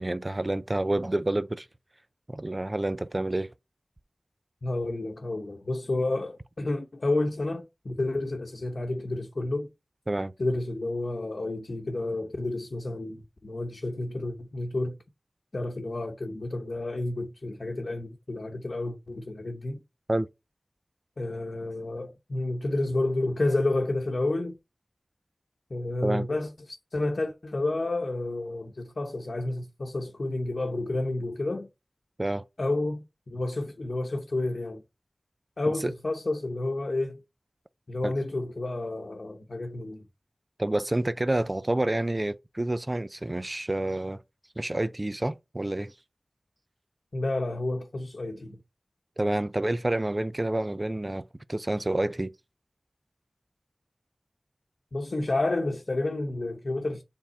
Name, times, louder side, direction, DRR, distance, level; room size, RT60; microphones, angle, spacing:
voice 1, 0.0-1.7 2.3-3.5 10.1-10.3 20.1-20.3 26.0-26.3 32.2-32.4 35.8-35.9 38.0-38.1 40.6-44.2 44.6-45.9 49.2-51.2 51.5-52.3, right 1 dB, 35° right, 0.5 m, -28 dB
voice 2, 4.6-9.7 10.4-15.0 15.5-19.8 21.2-24.6 25.7-31.7 32.6-34.8 35.6-37.2 37.9-40.0 47.1-48.6 54.9-57.0, left 2 dB, 70° left, 0.9 m, -30 dB
7.3 x 3.6 x 4.3 m
wide cardioid pair, 55°, 0 cm